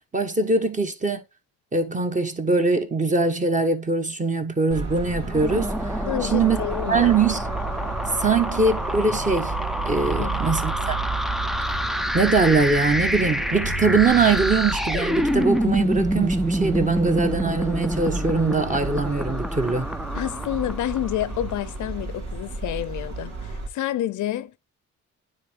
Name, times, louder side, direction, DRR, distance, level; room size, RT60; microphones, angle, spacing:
voice 1, 0.1-1.2 1.7-5.9 6.3-6.6 6.9-7.4 8.2-9.5 9.8-11.0 12.1-19.9, right 4 dB, 25° right, 1.3 m, -22 dB
Traffic noise roadway noise, 4.7-23.7, right 3 dB, 60° right, 2.9 m, -32 dB
sound 1, 5.2-21.5, equal, ahead, 0.4 m, -27 dB
voice 2, 6.1-7.1 10.2-10.4 20.1-24.6, left 13 dB, 75° left, 0.7 m, -29 dB
9.4 x 3.7 x 3.4 m
cardioid pair, 90°, 30 cm